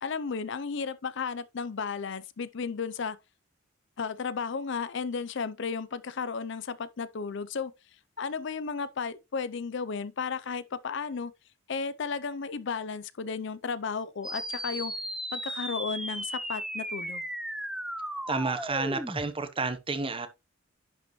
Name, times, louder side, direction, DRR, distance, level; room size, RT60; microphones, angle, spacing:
voice 1, 0.0-3.2 4.0-7.7 8.2-11.3 11.7-14.9 15.3-17.2, left 5 dB, 65° left, 0.5 m, -34 dB
sound 1, 14.2-19.2, right 1 dB, 5° right, 0.6 m, -36 dB
voice 2, 18.3-20.3, right 3 dB, 25° right, 0.9 m, -30 dB
10.5 x 5.1 x 3.0 m
head